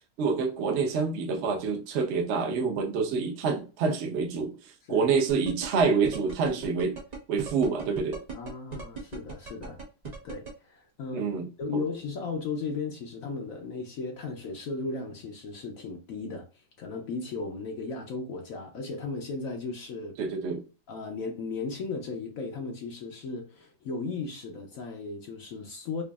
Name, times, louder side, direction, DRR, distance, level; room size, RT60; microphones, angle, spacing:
voice 1, 0.2-4.5 4.9-7.0 7.3-8.2 11.1-11.5 11.7-11.8 20.2-20.6, right 5 dB, 75° right, 0.6 m, -27 dB
sound 1, 5.3-10.5, right 5 dB, 30° right, 0.8 m, -38 dB
voice 2, 8.3-9.8 10.2-11.3 11.6-16.5 16.8-20.2 20.9-26.0, left 4 dB, 70° left, 0.8 m, -36 dB
4.9 x 2.5 x 2.3 m
omnidirectional pair, 2.1 m